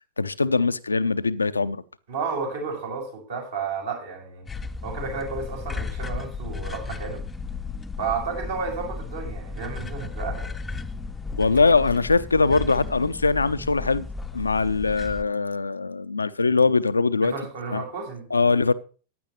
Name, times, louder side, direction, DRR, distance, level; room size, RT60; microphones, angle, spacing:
voice 1, 0.2-1.8 11.4-14.1 14.3-17.3 17.7-17.8 18.3-18.7, left 4 dB, 80° left, 0.7 m, -22 dB
voice 2, 2.1-4.5 4.8-7.2 8.0-10.5 17.2-18.3, right 5 dB, 60° right, 6.3 m, -32 dB
sound 1, 4.5-15.2, left 4 dB, 10° left, 0.8 m, -34 dB
15.5 x 10.5 x 3.1 m
figure-of-eight pair, 90°, 0 cm